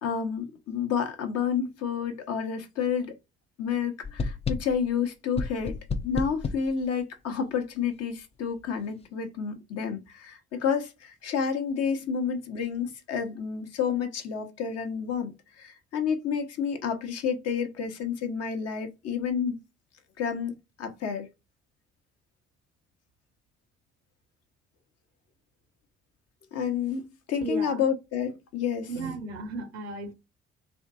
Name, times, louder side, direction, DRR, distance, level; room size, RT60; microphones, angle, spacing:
voice 1, 0.0-3.2 3.6-5.8 6.0-19.6 20.2-21.3 26.5-28.9, left 7 dB, 50° left, 0.9 m, -30 dB
sound 1, 4.0-4.9 5.4-6.7, left 4 dB, 20° left, 0.4 m, -31 dB
voice 2, 27.4-27.8 28.9-30.1, right 3 dB, 80° right, 0.7 m, -35 dB
3.5 x 2.6 x 2.4 m
figure-of-eight pair, 45°, 32 cm